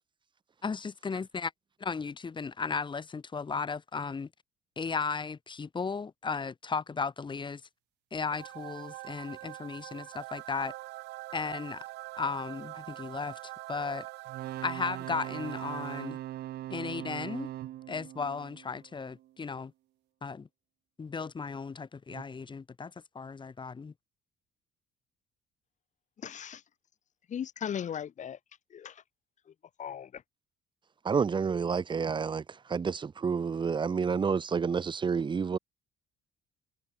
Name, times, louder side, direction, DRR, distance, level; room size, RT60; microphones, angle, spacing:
voice 1, 0.6-1.5 1.8-4.3 4.8-7.6 8.1-10.7 11.3-11.8 12.2-14.1 14.6-16.2 16.7-17.5 17.9-19.7 20.2-20.5 21.0-23.9, left 5 dB, 30° left, 6.5 m, -35 dB
sound 1, 8.3-16.6, right 20 dB, 90° right, 2.1 m, -44 dB
sound 2, 14.3-19.3 22.1-22.2, right 13 dB, 70° right, 4.0 m, -41 dB
voice 2, 26.2-26.6 27.3-28.4 28.7-29.0 29.5-29.6 29.8-30.2, left 8 dB, 45° left, 2.5 m, -37 dB
voice 3, 31.0-32.4 32.7-35.6, right 6 dB, 30° right, 1.2 m, -29 dB
cardioid pair, 110°, 17 cm